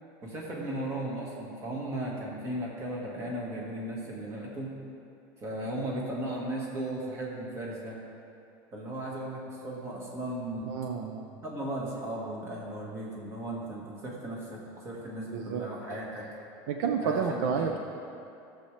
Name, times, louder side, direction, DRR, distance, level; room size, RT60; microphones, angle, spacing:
voice 1, 0.2-4.7 5.4-8.0 8.7-10.8 11.4-16.3 17.0-17.7, right 1 dB, 25° right, -3 dB, 1.6 m, -36 dB
voice 2, 10.7-11.3 15.3-15.6 16.7-17.8, right 6 dB, 65° right, 3 dB, 0.6 m, -30 dB
14.5 x 7.1 x 3.3 m, 2.6 s
cardioid pair, 180°, 11 cm